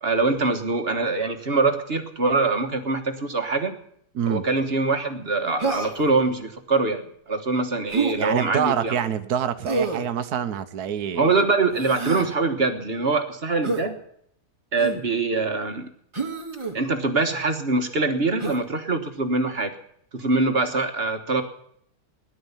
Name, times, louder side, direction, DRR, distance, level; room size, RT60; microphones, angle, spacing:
voice 1, 0.0-3.7 4.3-8.9 11.1-14.0 14.7-15.9 16.7-19.7 20.1-21.4, right 3 dB, 40° right, 6 dB, 1.5 m, -23 dB
Human voice, 5.6-6.1 7.9-8.2 9.7-10.1 11.7-12.3 13.6-13.9 14.8-15.1 16.1-16.8 18.4-18.6, right 3 dB, 20° right, 1.6 m, -27 dB
voice 2, 8.2-11.3, right 8 dB, 80° right, 10 dB, 1.4 m, -26 dB
17.5 x 11.0 x 7.2 m, 0.70 s
omnidirectional pair, 1.6 m